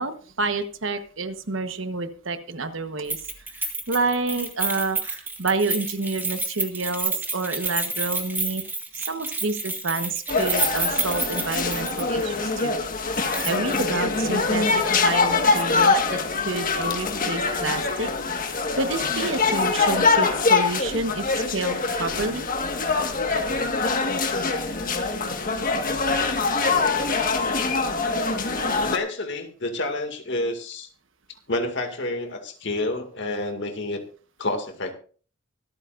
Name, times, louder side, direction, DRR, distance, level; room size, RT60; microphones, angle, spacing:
voice 1, 0.0-3.2 3.5-8.6 8.9-12.8 13.2-18.1 18.7-22.5, right 3 dB, 70° right, 9 dB, 1.3 m, -29 dB
Keys jangling, 3.1-12.2 12.6-12.7 13.3-13.8 14.1-14.2, right 3 dB, 10° right, 1.9 m, -29 dB
sound 1, 10.3-29.0, left 4 dB, 45° left, 1.6 m, -24 dB
voice 2, 28.8-30.9 31.5-34.0 34.4-34.9, left 2 dB, 65° left, 5 dB, 2.2 m, -29 dB
24.0 x 9.1 x 2.6 m, 0.40 s
head